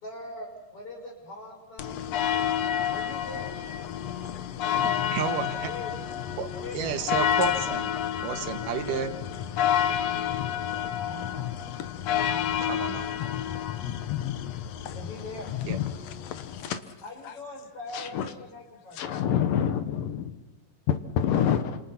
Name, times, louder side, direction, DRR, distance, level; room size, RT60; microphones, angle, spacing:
voice 1, 0.0-2.1 2.9-3.6 3.9-5.1 5.6-6.0 6.6-6.9 8.8-9.2 10.8-11.6 14.9-15.5 17.0-19.0, left 2 dB, 40° left, 1 dB, 6.6 m, -42 dB
sound 1, 1.8-16.6, left 10 dB, 65° left, 1.9 m, -29 dB
voice 2, 4.8-5.7 6.4-6.5 6.7-9.1 12.7-13.1 15.6-15.8, right 7 dB, 75° right, 8 dB, 3.0 m, -31 dB
voice 3, 17.9-18.3 19.0-20.3 20.9-21.8, left 9 dB, 80° left, 9 dB, 2.9 m, -26 dB
30.0 x 27.0 x 5.9 m, 1.0 s
omnidirectional pair, 3.9 m